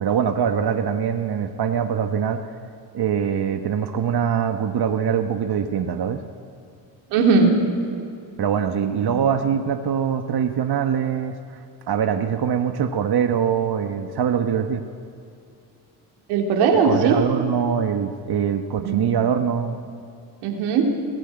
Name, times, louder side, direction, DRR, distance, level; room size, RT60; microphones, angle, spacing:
voice 1, 0.0-2.4 2.9-6.2 8.4-11.4 11.9-14.8 16.8-19.8, right 8 dB, 50° right, 7 dB, 1.3 m, -23 dB
voice 2, 7.1-7.5 8.8-8.9 16.3-17.1 18.8-19.0 20.4-20.9, right 5 dB, 85° right, 1 dB, 3.0 m, -19 dB
21.0 x 14.0 x 8.9 m, 2.3 s
hypercardioid pair, 50°, 50 cm